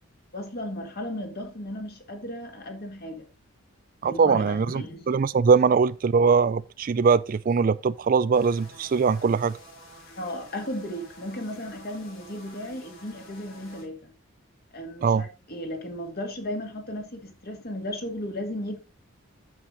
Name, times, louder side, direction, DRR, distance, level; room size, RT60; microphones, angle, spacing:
voice 1, 0.3-3.3 4.1-5.1 10.2-14.1 14.7-18.8, left 1 dB, 45° left, 2.1 m, -35 dB
voice 2, 4.0-9.6 15.0-15.2, right 5 dB, 40° right, 0.3 m, -22 dB
sound 1, 8.3-13.9, equal, 75° left, 3.0 m, -49 dB
8.6 x 7.4 x 3.9 m
head